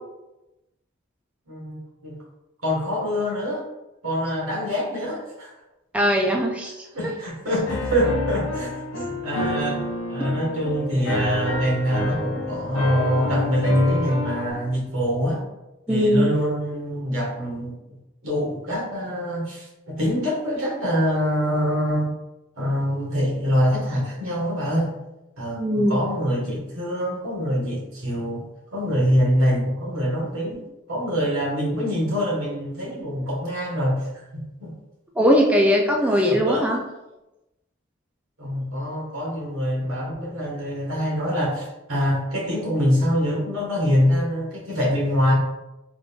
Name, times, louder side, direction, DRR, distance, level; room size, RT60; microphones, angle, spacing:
voice 1, 1.5-2.2 2.6-3.7 4.0-5.5 6.9-9.8 10.1-15.4 15.9-17.8 18.2-22.1 22.6-24.9 25.4-28.4 28.7-34.7 36.1-36.7 38.4-45.3, equal, 90° right, -3 dB, 1.4 m, -24 dB
voice 2, 5.9-6.8 15.9-16.3 25.6-26.0 35.2-36.8, equal, 5° right, 0 dB, 0.3 m, -20 dB
Piano, 7.7-14.5, left 2 dB, 70° left, 0.6 m, -29 dB
3.7 x 3.6 x 2.3 m, 0.99 s
head